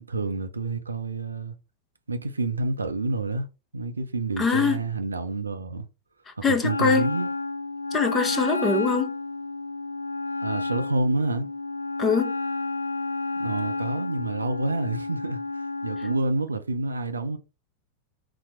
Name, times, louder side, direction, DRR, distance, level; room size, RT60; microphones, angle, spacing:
voice 1, 0.0-1.6 2.1-3.5 3.7-5.9 6.4-7.3 10.4-11.5 13.3-17.4, right 3 dB, 80° right, 0.5 m, -28 dB
voice 2, 4.4-4.8 6.3-7.1 7.9-9.2 12.0-12.3 16.0-16.1, left 5 dB, 20° left, 0.8 m, -23 dB
Wind instrument woodwind instrument, 6.6-16.2, left 3 dB, 80° left, 0.3 m, -31 dB
4.3 x 2.1 x 4.3 m
figure-of-eight pair, 90°, 0 cm